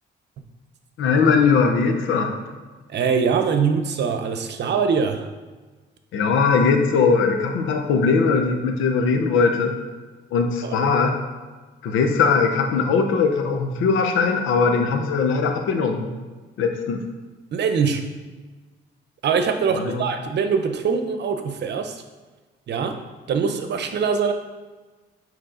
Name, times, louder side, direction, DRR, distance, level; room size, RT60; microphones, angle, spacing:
voice 1, 1.0-2.3 6.1-9.7 10.3-11.2 11.8-16.1 16.6-17.0 19.7-20.0, left 5 dB, 85° left, 5 dB, 0.8 m, -20 dB
voice 2, 2.9-5.3 10.6-10.7 17.5-18.0 19.2-22.0 22.7-23.0 23.3-24.3, right 6 dB, 60° right, 7 dB, 0.8 m, -23 dB
8.9 x 3.2 x 3.9 m, 1.3 s
cardioid pair, 90°, 20 cm